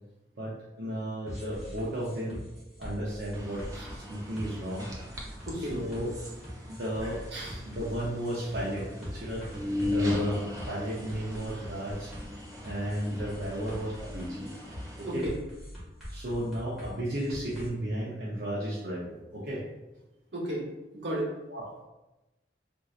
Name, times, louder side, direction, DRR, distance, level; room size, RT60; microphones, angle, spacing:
voice 1, 0.4-2.4 2.8-3.6 3.9-4.9 5.7-6.1 6.7-7.2 7.6-9.5 9.9-12.1 12.6-14.5 15.0-15.2 16.1-19.6 21.5-21.8, right 1 dB, 55° right, -7 dB, 0.7 m, -34 dB
sound 1, 1.3-17.7, equal, ahead, 1.2 m, -43 dB
sound 2, 3.3-15.2, left 2 dB, 20° right, 0.5 m, -38 dB
voice 2, 5.5-5.8 7.3-7.6 8.4-8.5 15.0-15.4 20.3-21.4, right 1 dB, 80° right, -4 dB, 1.0 m, -34 dB
4.4 x 2.6 x 2.4 m, 1.0 s
head